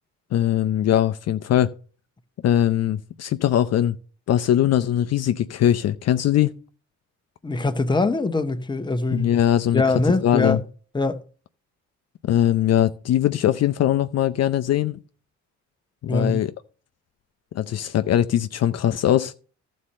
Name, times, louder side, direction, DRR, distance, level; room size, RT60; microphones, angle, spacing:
voice 1, 0.3-1.7 2.4-4.0 4.3-6.5 9.1-9.8 10.2-10.6 12.2-15.0 16.0-16.5 17.5-19.3, left 11 dB, 55° left, 0.6 m, -21 dB
voice 2, 7.4-9.3 9.7-10.6 10.9-11.2 16.1-16.4, left 2 dB, 15° left, 1.0 m, -22 dB
12.5 x 4.3 x 6.4 m
cardioid pair, 90°, 30 cm